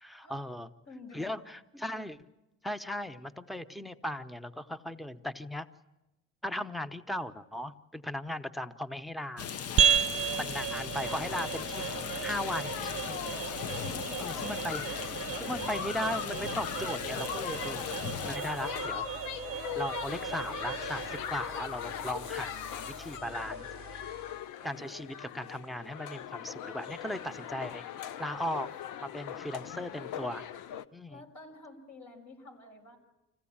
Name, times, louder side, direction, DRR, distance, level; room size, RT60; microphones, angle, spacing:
voice 1, 0.0-0.7 1.1-2.2 2.6-5.7 6.4-9.5 10.4-13.2 14.2-14.8 15.4-17.8 18.2-19.1 19.5-24.1 24.6-28.7 29.0-30.4 30.9-31.2, left 1 dB, ahead, 11 dB, 0.8 m, -37 dB
voice 2, 0.9-1.5 10.3-11.4 13.7-14.8 31.1-33.0, left 2 dB, 70° left, 2 dB, 5.4 m, -50 dB
Rain, 9.4-18.4, left 8 dB, 55° left, 0.8 m, -39 dB
sound 1, 9.8-24.4, right 8 dB, 50° right, 0.7 m, -35 dB
sound 2, 11.0-30.9, left 10 dB, 85° left, 0.7 m, -40 dB
25.5 x 16.0 x 8.7 m, 0.98 s
cardioid pair, 90°, 30 cm